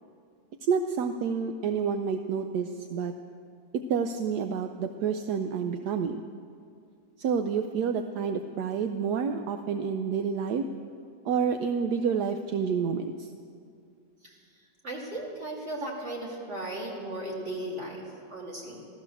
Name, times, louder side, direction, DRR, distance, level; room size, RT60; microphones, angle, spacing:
voice 1, 0.7-3.1 3.7-6.2 7.2-10.6 11.2-13.3, right 6 dB, 70° right, 6 dB, 1.1 m, -29 dB
voice 2, 14.8-18.9, right 1 dB, 35° right, -3 dB, 3.0 m, -36 dB
15.0 x 13.5 x 6.9 m, 2.4 s
omnidirectional pair, 2.1 m